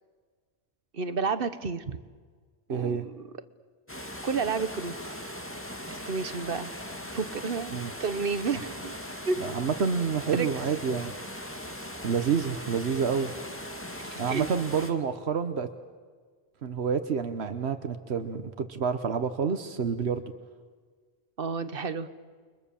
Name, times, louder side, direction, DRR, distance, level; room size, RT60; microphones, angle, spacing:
voice 1, 0.9-2.0 2.7-3.3 4.2-5.2 5.9-6.7 7.1-7.7 8.0-8.9 9.2-9.4 10.3-10.5 14.0-14.5 21.4-22.1, right 5 dB, 60° right, 12 dB, 1.3 m, -31 dB
voice 2, 2.7-3.1 7.7-7.9 8.5-8.6 9.4-11.1 12.0-13.3 14.2-15.7 16.6-20.2, right 6 dB, 85° right, 9 dB, 1.3 m, -28 dB
sound 1, 3.9-14.9, left 1 dB, 10° left, 2.1 m, -39 dB
29.5 x 23.5 x 7.1 m, 1.5 s
omnidirectional pair, 1.1 m